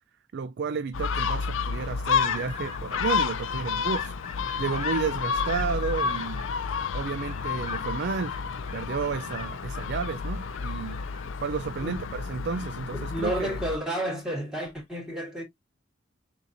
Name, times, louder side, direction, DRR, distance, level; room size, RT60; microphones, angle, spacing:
voice 1, 0.3-4.1 4.6-6.4 6.9-8.4 8.7-11.0 11.4-13.6, right 5 dB, 60° right, 0.4 m, -32 dB
Gull seagull, 0.9-13.8, left 6 dB, 70° left, 0.4 m, -30 dB
sound 1, 2.1-13.7, left 6 dB, 35° left, 0.8 m, -42 dB
voice 2, 12.9-15.4, equal, 5° right, 2.3 m, -31 dB
6.6 x 2.8 x 2.5 m
head